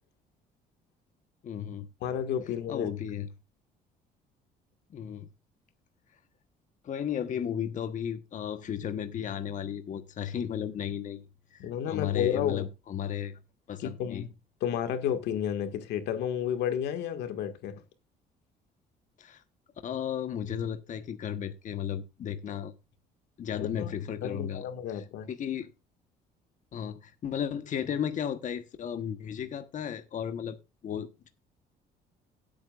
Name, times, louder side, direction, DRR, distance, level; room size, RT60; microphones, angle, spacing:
voice 1, 1.4-1.9 2.7-3.3 4.9-5.3 6.8-11.2 11.5-13.4 13.7-14.3 19.2-19.4 19.8-22.7 23.4-24.6 24.9-25.7 26.7-30.6 30.8-31.3, left 9 dB, 50° left, 1.3 m, -34 dB
voice 2, 2.0-2.9 11.6-12.7 13.8-14.3 14.6-17.8 23.5-23.9 24.2-25.3, left 9 dB, 80° left, 1.9 m, -31 dB
17.0 x 8.8 x 2.5 m
cardioid pair, 110°, 17 cm